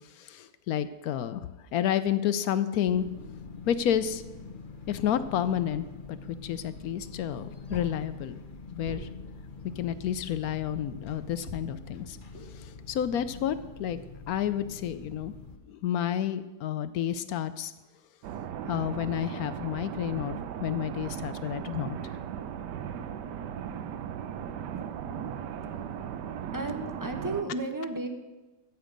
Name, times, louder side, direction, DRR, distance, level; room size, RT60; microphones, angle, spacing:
voice 1, 0.2-1.4 1.7-3.0 3.7-4.2 4.9-8.4 8.7-9.1 9.8-12.2 12.5-14.0 14.3-15.3 15.7-17.7 18.7-22.0, left 10 dB, 70° left, 13 dB, 0.9 m, -30 dB
sound 1, 2.8-15.6, left 4 dB, 40° left, 0.9 m, -45 dB
sound 2, 6.8-10.9 11.4-14.5, equal, 35° right, 3.3 m, -49 dB
sound 3, 18.2-27.4, right 8 dB, 80° right, 1.2 m, -37 dB
voice 2, 26.5-28.1, right 2 dB, 20° right, 4 dB, 0.6 m, -33 dB
14.0 x 8.2 x 5.2 m, 1.1 s
omnidirectional pair, 1.8 m